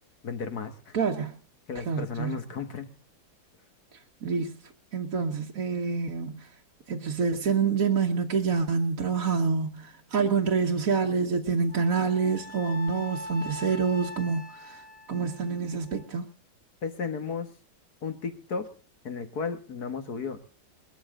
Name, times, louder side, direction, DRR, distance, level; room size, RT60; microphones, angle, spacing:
voice 1, 0.2-1.0 1.7-2.9 16.8-17.5 18.0-18.7 19.0-20.4, left 5 dB, 55° left, 2.0 m, -34 dB
voice 2, 0.9-1.4 1.8-2.4 4.2-4.6 4.9-6.5 6.9-14.8 15.1-16.3, right 5 dB, 50° right, 1.4 m, -27 dB
Wind instrument woodwind instrument, 11.7-16.1, left 1 dB, 30° left, 0.6 m, -42 dB
21.0 x 13.0 x 3.8 m
omnidirectional pair, 2.1 m